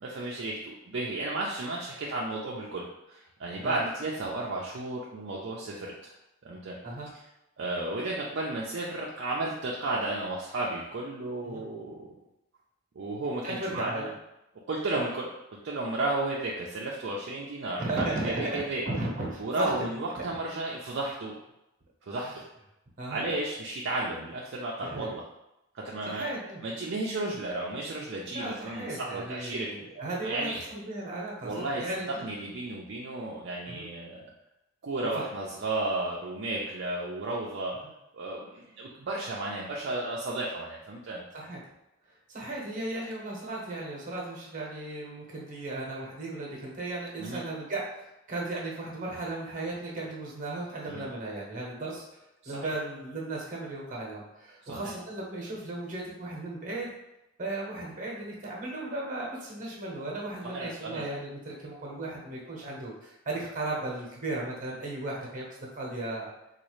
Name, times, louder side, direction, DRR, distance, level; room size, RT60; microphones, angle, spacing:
voice 1, 0.0-5.9 6.4-6.8 7.6-12.1 13.0-14.1 14.7-15.3 15.6-18.8 19.4-21.3 22.1-22.4 23.1-25.2 25.7-26.3 26.6-29.7 30.2-30.6 31.4-31.9 32.2-34.3 34.8-37.7 38.1-41.2 47.2-47.4 50.9-51.1 52.4-52.7 54.6-54.9 60.4-61.0, right 2 dB, 55° right, -3 dB, 0.4 m, -33 dB
voice 2, 13.4-14.1 17.8-18.5 18.9-19.9 20.2-20.3 22.2-22.4 23.0-23.2 24.8-25.1 26.0-26.6 28.2-32.2 33.7-33.9 35.1-35.2 41.3-41.6 42.3-56.9 57.4-65.4 65.7-66.3, right 2 dB, 40° right, -3 dB, 0.9 m, -36 dB
4.0 x 2.3 x 3.1 m, 0.91 s
head